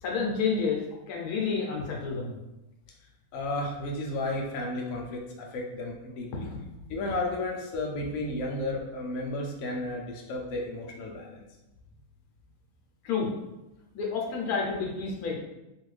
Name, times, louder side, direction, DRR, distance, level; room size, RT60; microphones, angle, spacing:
voice 1, 0.0-2.4 6.3-6.6 13.0-13.3 13.9-15.3, left 5 dB, 85° left, -1 dB, 1.2 m, -30 dB
voice 2, 3.3-6.5 6.9-11.5, left 2 dB, 70° left, -1 dB, 1.0 m, -33 dB
3.0 x 2.4 x 3.2 m, 0.95 s
omnidirectional pair, 1.6 m